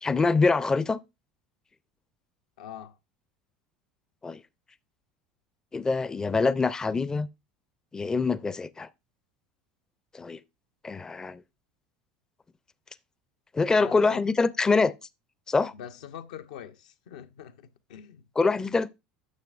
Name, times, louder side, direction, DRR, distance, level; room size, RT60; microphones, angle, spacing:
voice 1, 0.0-1.0 4.2-4.4 5.7-7.3 7.9-8.9 10.1-10.4 10.8-11.4 13.5-14.9 15.5-15.7 18.4-18.9, left 4 dB, 15° left, 0.4 m, -24 dB
voice 2, 2.6-3.0 13.8-14.2 15.7-18.3, left 9 dB, 80° left, 0.7 m, -43 dB
9.6 x 6.5 x 2.4 m
hypercardioid pair, 80°, 4 cm